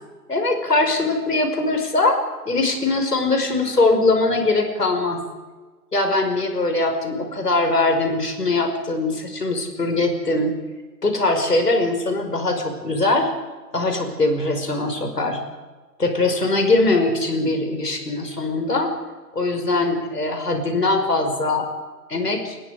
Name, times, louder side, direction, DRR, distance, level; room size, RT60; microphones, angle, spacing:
voice 1, 0.3-2.2 2.5-5.2 5.9-10.5 11.0-13.3 13.7-15.4 16.0-18.9 19.3-21.7 22.1-22.6, left 2 dB, 70° left, 5 dB, 5.4 m, -21 dB
28.0 x 21.0 x 5.0 m, 1.3 s
figure-of-eight pair, 150°, 49 cm